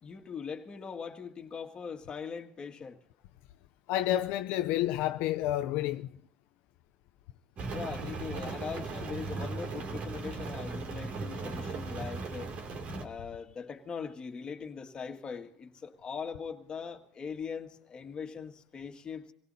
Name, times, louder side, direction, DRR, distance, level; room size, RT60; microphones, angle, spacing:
voice 1, 0.0-3.0 7.7-12.5 13.0-19.3, left 6 dB, 30° left, 1.9 m, -41 dB
voice 2, 3.9-6.1, left 13 dB, 70° left, 0.5 m, -29 dB
Rain, 7.6-13.1, right 3 dB, 50° right, 2.6 m, -37 dB
25.5 x 17.5 x 2.8 m
supercardioid pair, 115°, 3 cm